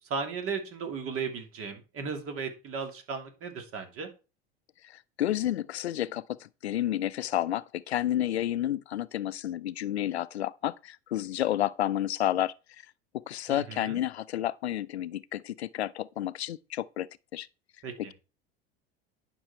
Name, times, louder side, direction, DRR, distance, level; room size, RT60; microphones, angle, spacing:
voice 1, 0.1-4.1 13.5-14.0 17.8-18.1, right 5 dB, 45° right, 3.2 m, -36 dB
voice 2, 4.8-12.5 13.3-17.1 17.3-17.5, left 12 dB, 90° left, 0.5 m, -30 dB
11.0 x 6.2 x 4.5 m
hypercardioid pair, 80°, 31 cm